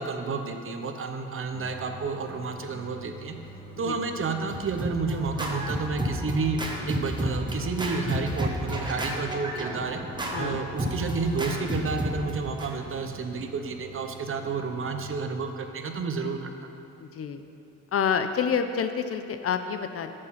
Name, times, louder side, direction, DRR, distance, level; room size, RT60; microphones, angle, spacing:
voice 1, 0.0-3.3 3.8-6.6 6.9-10.0 10.4-16.5, right 4 dB, 45° right, 5 dB, 0.9 m, -30 dB
sound 1, 1.5-14.9, right 2 dB, 20° left, 2.6 m, -46 dB
Scratching (performance technique), 4.2-12.7, equal, 15° right, 1.3 m, -32 dB
voice 2, 17.0-17.4 17.9-20.1, left 7 dB, 50° left, 8 dB, 0.6 m, -28 dB
9.9 x 6.5 x 5.7 m, 2.5 s
cardioid pair, 90°, 30 cm